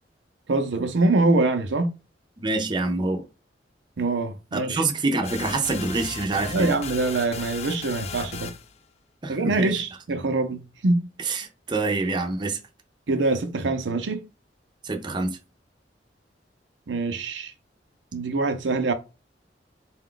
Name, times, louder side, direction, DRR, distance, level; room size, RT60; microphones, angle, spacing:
voice 1, 0.5-1.9 4.0-4.8 6.5-8.5 9.3-11.1 13.1-14.2 16.9-17.5 18.1-18.9, right 2 dB, 85° right, 0.6 m, -24 dB
voice 2, 2.4-3.2 4.5-6.7 9.2-9.7 11.3-12.6 14.8-15.4, right 3 dB, 25° right, 0.5 m, -26 dB
sound 1, 5.2-8.7, left 5 dB, 35° left, 0.4 m, -36 dB
4.0 x 2.3 x 3.8 m
head